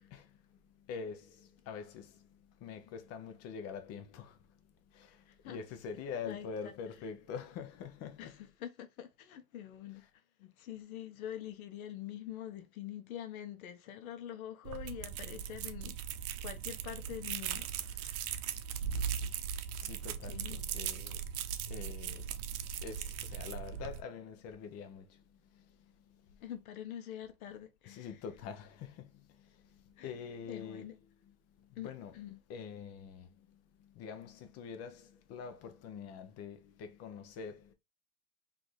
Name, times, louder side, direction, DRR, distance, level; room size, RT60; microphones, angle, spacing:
voice 1, 0.0-4.5 4.9-8.4 18.8-19.3 19.8-21.3 21.7-26.4 27.8-30.9 31.6-32.1 32.5-37.7, left 6 dB, 35° left, 0.7 m, -46 dB
voice 2, 5.3-5.6 6.3-6.7 8.2-10.1 10.4-16.0 16.4-18.3 20.2-20.7 26.4-28.2 30.0-30.2 30.5-31.0 31.8-32.4, left 11 dB, 75° left, 0.9 m, -45 dB
sound 1, 14.7-24.0, right 8 dB, 75° right, 0.7 m, -39 dB
4.2 x 2.8 x 3.1 m
hypercardioid pair, 120°, 43 cm